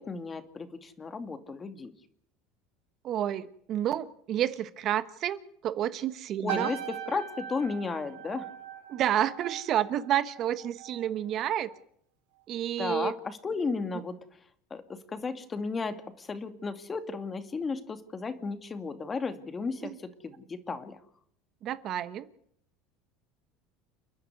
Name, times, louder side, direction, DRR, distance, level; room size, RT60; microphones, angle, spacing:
voice 1, 0.0-1.9 6.4-8.5 12.8-14.2 14.7-21.0, left 4 dB, 25° left, 9 dB, 2.4 m, -34 dB
voice 2, 3.0-6.7 8.9-11.7 12.5-13.1 19.8-20.0 21.6-22.3, right 11 dB, 50° right, 14 dB, 1.2 m, -30 dB
sound 1, 6.5-11.1 11.4-11.8, right 11 dB, 85° right, 3.6 m, -40 dB
29.5 x 10.5 x 9.6 m, 0.69 s
supercardioid pair, 110°, 0 cm